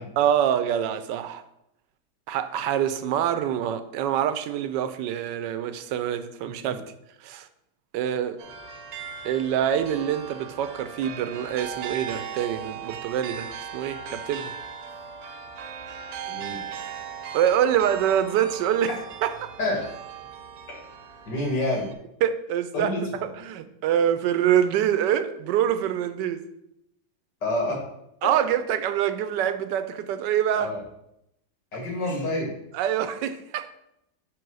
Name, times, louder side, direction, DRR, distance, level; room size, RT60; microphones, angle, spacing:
voice 1, 0.2-1.4 2.3-6.8 7.2-7.5 7.9-8.4 9.2-14.5 17.3-18.9 19.2-19.3 22.2-22.9 23.4-26.4 28.2-30.7 32.7-33.7, right 10 dB, 80° right, 11 dB, 1.2 m, -25 dB
sound 1, 8.4-21.9, right 7 dB, 65° right, 1.1 m, -38 dB
voice 2, 16.3-16.6 19.6-19.8 20.7-20.8 21.3-21.9 22.7-23.3 27.4-27.8 28.2-28.5 30.5-30.8 31.7-32.5, left 1 dB, 75° left, -1 dB, 2.5 m, -28 dB
5.3 x 4.6 x 6.2 m, 0.82 s
omnidirectional pair, 1.9 m